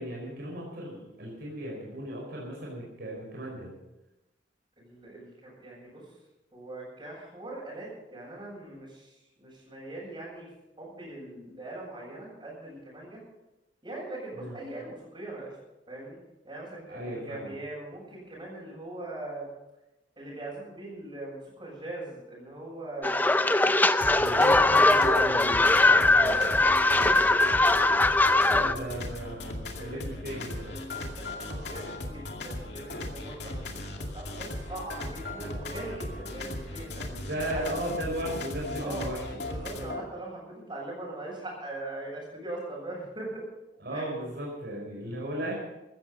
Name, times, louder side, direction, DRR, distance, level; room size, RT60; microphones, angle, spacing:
voice 1, 0.0-3.7 14.3-14.6 16.9-17.5 24.1-26.3 28.5-30.7 37.1-39.2 43.8-45.6, right 1 dB, 60° right, -3 dB, 4.9 m, -36 dB
voice 2, 4.8-6.0 6.5-9.1 9.4-10.5 10.8-13.2 13.8-15.5 15.9-16.2 16.4-19.5 20.1-23.5 24.4-25.1 25.6-27.8 28.4-28.9 29.8-30.1 30.6-33.8 34.1-37.1 37.5-37.6 38.8-39.1 39.4-43.4 43.9-44.1, right 2 dB, 25° right, -9 dB, 6.9 m, -41 dB
sound 1, 23.0-28.7, left 2 dB, 10° left, 0.5 m, -21 dB
sound 2, 24.0-40.0, left 2 dB, 65° left, 2.4 m, -37 dB
15.5 x 14.0 x 5.5 m, 0.98 s
head